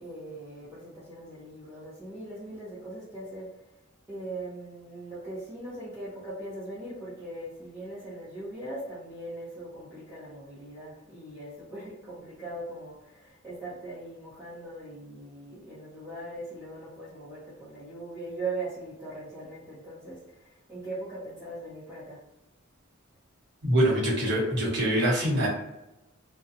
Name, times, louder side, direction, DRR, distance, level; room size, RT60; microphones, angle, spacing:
voice 1, 0.0-3.7 4.1-22.2, right 2 dB, 10° right, -11 dB, 0.8 m, -40 dB
voice 2, 23.6-25.5, right 1 dB, 55° right, -5 dB, 1.0 m, -24 dB
2.5 x 2.2 x 2.6 m, 0.96 s
head